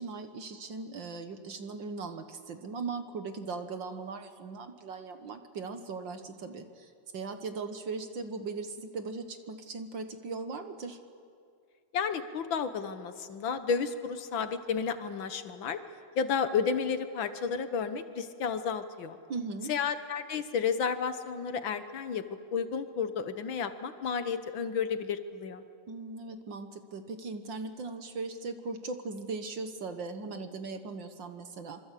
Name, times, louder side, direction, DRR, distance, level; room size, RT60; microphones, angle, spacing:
voice 1, 0.0-11.0 19.3-19.7 25.9-31.8, right 4 dB, 50° right, 8 dB, 1.6 m, -39 dB
voice 2, 11.9-15.8 16.2-19.2 19.7-22.2 22.5-25.6, left 6 dB, 55° left, 10 dB, 1.4 m, -32 dB
26.0 x 26.0 x 8.4 m, 2.3 s
omnidirectional pair, 3.3 m